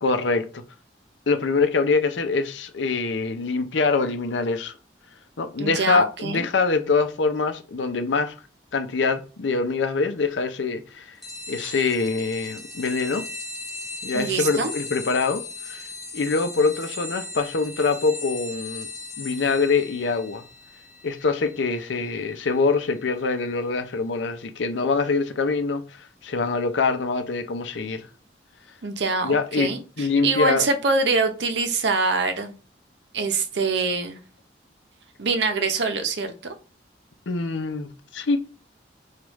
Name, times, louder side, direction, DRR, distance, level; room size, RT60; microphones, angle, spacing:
voice 1, 0.0-0.6 1.3-4.7 5.4-8.3 8.7-11.1 11.5-13.2 14.0-15.8 16.1-18.9 19.2-20.4 21.0-25.8 26.2-28.0 29.2-30.7 37.3-38.4, left 4 dB, 90° left, 0.6 m, -24 dB
voice 2, 5.6-6.5 14.1-14.7 28.8-32.6 33.1-34.2 35.2-36.5, right 3 dB, 75° right, 0.7 m, -24 dB
sound 1, 11.2-23.3, left 3 dB, ahead, 1.2 m, -38 dB
4.8 x 2.4 x 3.0 m
head